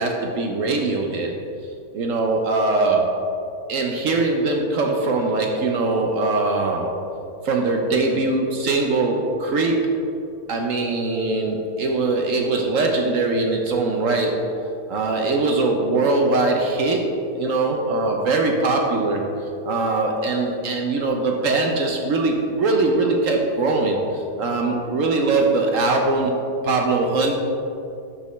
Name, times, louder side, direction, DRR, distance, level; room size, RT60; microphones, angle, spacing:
voice 1, 0.0-1.3 1.9-3.2 3.7-6.9 7.4-9.9 10.5-14.5 14.9-17.1 17.4-19.2 19.6-26.4 26.6-27.3, right 3 dB, 60° right, 2 dB, 1.0 m, -21 dB
12.5 x 5.3 x 3.1 m, 2.6 s
omnidirectional pair, 1.8 m